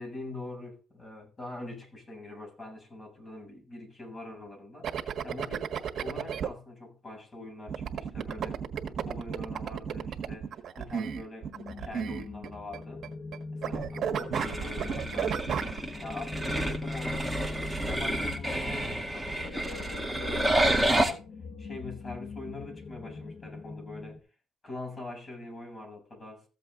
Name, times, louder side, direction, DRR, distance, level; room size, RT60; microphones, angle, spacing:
voice 1, 0.0-4.9 5.2-5.7 6.0-8.6 8.9-13.1 13.5-15.4 16.0-21.2 21.6-24.2 24.6-26.4, left 2 dB, 35° left, 7.0 m, -43 dB
sound 1, 4.8-6.5 7.7-13.4 13.6-15.8, right 8 dB, 60° right, 1.6 m, -33 dB
sound 2, 11.5-24.2, left 3 dB, 55° left, 1.4 m, -42 dB
sound 3, 14.3-21.1, right 1 dB, ahead, 2.1 m, -29 dB
15.0 x 7.6 x 3.8 m
cardioid pair, 90°, 0 cm